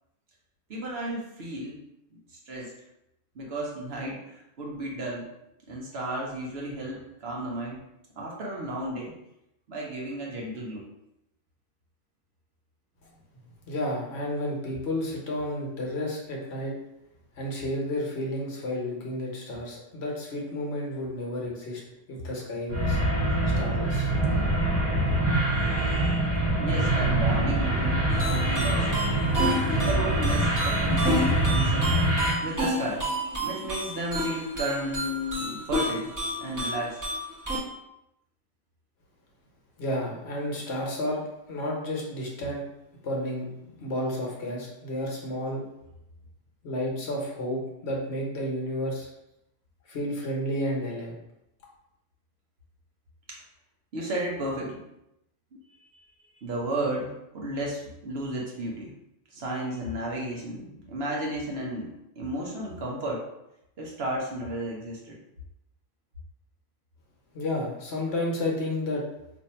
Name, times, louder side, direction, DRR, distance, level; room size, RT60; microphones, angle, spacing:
voice 1, 0.7-1.8 2.5-2.7 3.3-5.3 5.7-7.8 8.2-9.1 9.7-10.8 25.8-25.9 26.5-28.9 29.5-31.9 32.4-33.1 33.4-36.1 36.4-37.0 53.3-53.4 53.9-54.8 55.9-58.9 59.3-61.9 62.2-63.3 63.8-65.2, right 1 dB, 60° right, -2 dB, 0.9 m, -33 dB
voice 2, 13.7-16.8 17.4-21.8 22.1-23.0 23.6-24.1 39.8-41.2 41.5-42.6 43.0-45.6 46.6-49.1 49.9-51.2 67.3-69.0, left 1 dB, 60° left, -2 dB, 1.0 m, -31 dB
sound 1, 22.7-32.3, right 1 dB, 15° left, 1.0 m, -24 dB
sound 2, 28.1-37.6, equal, 20° right, 0.8 m, -31 dB
2.7 x 2.6 x 4.2 m, 0.85 s
omnidirectional pair, 1.3 m